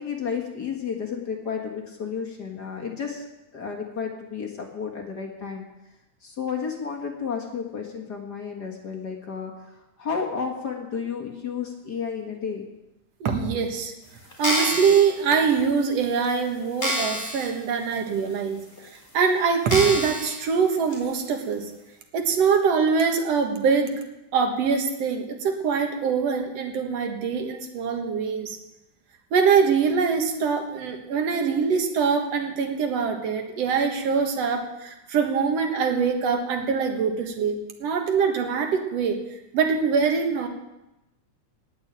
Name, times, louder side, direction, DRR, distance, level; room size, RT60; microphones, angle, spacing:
voice 1, 0.0-3.3 3.5-5.7 6.2-9.5 10.0-12.7, left 6 dB, 40° left, 1 dB, 1.8 m, -32 dB
voice 2, 13.2-13.9 14.4-18.6 19.1-21.6 22.1-23.9 24.3-28.6 29.3-39.2 39.5-40.5, right 6 dB, 60° right, 4 dB, 2.5 m, -23 dB
sound 1, 14.3-15.0 15.7-15.8 16.2-16.3 16.8-17.5 17.9-18.0 18.8-18.9 19.7-20.4 20.9-21.0, equal, 20° left, 4.2 m, -27 dB
18.5 x 6.5 x 8.9 m, 0.95 s
omnidirectional pair, 3.5 m